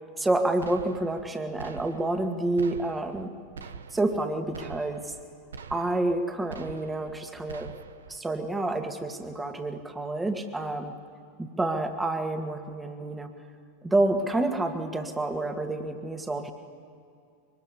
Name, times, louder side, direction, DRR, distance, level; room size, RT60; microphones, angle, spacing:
voice 1, 0.2-3.3 3.9-5.1 5.7-7.7 8.1-11.0 11.4-13.4 13.8-16.5, right 2 dB, 10° right, 6 dB, 2.1 m, -28 dB
sound 1, 0.6-1.3 1.6-2.3 2.6-3.3 3.6-4.2 4.5-5.2 5.5-6.2 6.5-7.2 7.5-8.2, right 6 dB, 70° right, 1.0 m, -44 dB
24.0 x 23.5 x 9.8 m, 2.3 s
figure-of-eight pair, 90°, 0 cm